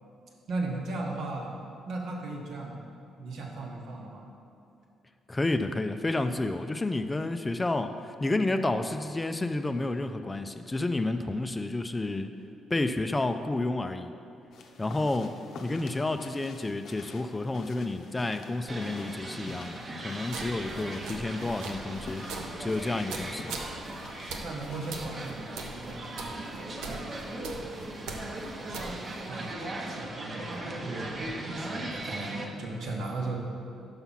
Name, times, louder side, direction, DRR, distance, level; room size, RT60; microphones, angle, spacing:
voice 1, 0.5-1.5 1.9-2.8 3.2-4.3 15.7-15.9 24.4-29.0 29.3-33.4, right 2 dB, 70° right, 0 dB, 1.2 m, -37 dB
voice 2, 5.3-12.3 12.7-14.1 14.8-15.4 15.6-22.3 22.6-23.5, left 2 dB, 20° left, 8 dB, 0.3 m, -30 dB
sound 1, 14.5-25.2, left 4 dB, 70° left, 0.6 m, -48 dB
sound 2, 18.7-32.5, right 1 dB, 40° right, 0.8 m, -39 dB
sound 3, 20.3-29.3, right 3 dB, 90° right, 0.6 m, -42 dB
5.8 x 5.7 x 5.6 m, 2.6 s
cardioid pair, 90°, 0 cm